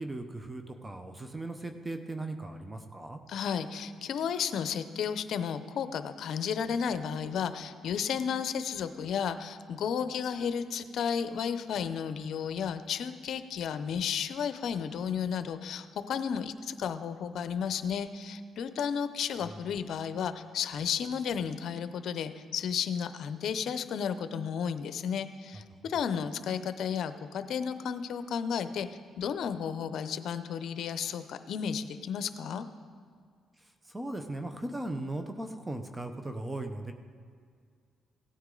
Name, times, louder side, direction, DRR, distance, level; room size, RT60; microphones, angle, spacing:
voice 1, 0.0-3.2 33.9-36.9, right 2 dB, 15° right, 6 dB, 0.8 m, -37 dB
voice 2, 3.3-28.9 29.2-32.7, left 7 dB, 70° left, 11 dB, 0.6 m, -33 dB
16.5 x 9.4 x 3.8 m, 2.1 s
cardioid pair, 90°, 0 cm